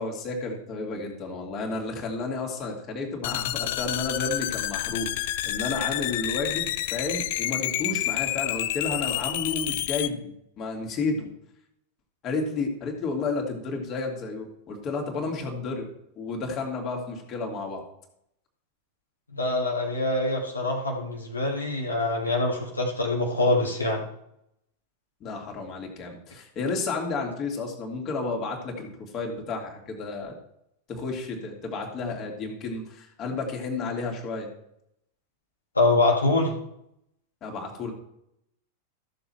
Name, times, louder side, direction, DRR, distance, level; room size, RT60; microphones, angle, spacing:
voice 1, 0.0-10.3 10.6-11.3 12.2-15.9 16.2-17.8 25.2-30.3 30.9-34.5 37.4-37.9, left 3 dB, 30° left, 1 dB, 2.8 m, -31 dB
sound 1, 3.2-10.1, left 14 dB, 50° left, 0.5 m, -29 dB
voice 2, 19.3-24.0 35.8-36.5, left 2 dB, 80° left, -1 dB, 1.9 m, -24 dB
14.5 x 7.1 x 4.5 m, 0.77 s
figure-of-eight pair, 90°, 0 cm